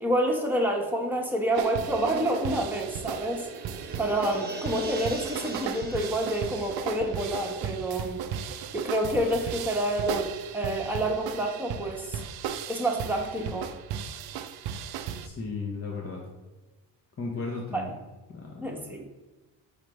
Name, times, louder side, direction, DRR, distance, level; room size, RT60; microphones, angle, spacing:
voice 1, 0.0-3.5 4.0-12.2 12.7-13.7 17.7-17.8 18.6-19.1, right 1 dB, 5° right, -1 dB, 1.0 m, -28 dB
sound 1, 1.5-15.3, right 8 dB, 55° right, 0.5 m, -36 dB
sound 2, 2.5-8.9 9.2-9.3, right 3 dB, 20° right, 0.7 m, -43 dB
voice 2, 15.2-16.2 17.2-17.9 18.3-19.1, left 4 dB, 30° left, 0 dB, 0.8 m, -35 dB
5.1 x 3.2 x 3.1 m, 1.1 s
supercardioid pair, 65°, 45 cm